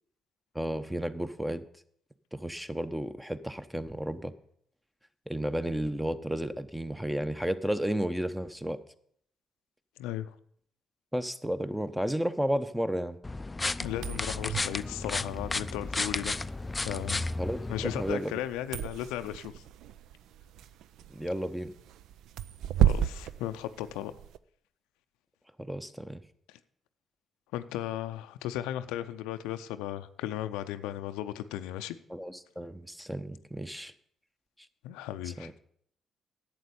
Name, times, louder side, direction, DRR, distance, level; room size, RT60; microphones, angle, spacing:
voice 1, 0.5-1.6 2.3-4.3 5.3-8.8 11.1-13.2 17.4-17.6 18.0-18.3 21.1-21.7 25.6-26.2 32.1-33.9 35.3-35.5, equal, 5° right, 12 dB, 0.9 m, -32 dB
voice 2, 10.0-10.4 13.8-16.4 16.8-17.3 17.7-19.6 22.8-24.1 26.5-26.6 27.5-32.0 34.8-35.6, left 12 dB, 80° left, 11 dB, 0.5 m, -36 dB
sound 1, 13.2-18.1, left 2 dB, 25° left, 0.4 m, -33 dB
sound 2, 13.9-24.4, right 10 dB, 70° right, 0.4 m, -34 dB
11.5 x 7.7 x 6.9 m, 0.64 s
hypercardioid pair, 45°, 0 cm